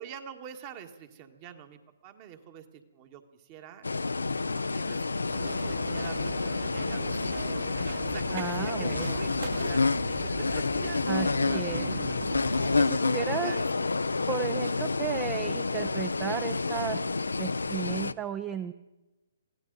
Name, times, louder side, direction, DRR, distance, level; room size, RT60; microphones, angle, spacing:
voice 1, 0.0-3.9 4.4-12.3 13.3-14.2, right 9 dB, 35° right, 6 dB, 1.7 m, -46 dB
sound 1, 3.8-18.1, left 3 dB, 90° left, 0.5 m, -29 dB
sound 2, 5.3-12.9, right 5 dB, 60° right, 2.5 m, -40 dB
voice 2, 8.3-9.1 11.1-11.9 12.8-13.5 14.3-17.0 17.4-18.7, right 8 dB, 20° right, 12 dB, 0.6 m, -34 dB
22.5 x 16.0 x 4.0 m, 1.1 s
hypercardioid pair, 135°, 0 cm